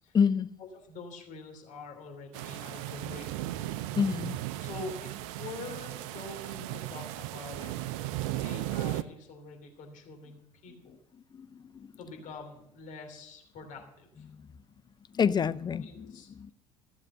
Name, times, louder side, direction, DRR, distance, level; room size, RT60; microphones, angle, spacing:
voice 1, 0.1-0.5 4.0-4.4 11.3-11.9 14.3-14.5 15.1-16.5, left 6 dB, 25° left, 0.5 m, -28 dB
voice 2, 0.7-3.6 4.6-7.8 8.4-11.0 12.0-14.3 15.8-16.5, left 3 dB, 45° left, 3.1 m, -45 dB
sound 1, 2.3-9.0, right 14 dB, 60° right, 0.6 m, -36 dB
14.0 x 7.4 x 6.6 m
figure-of-eight pair, 65°, 18 cm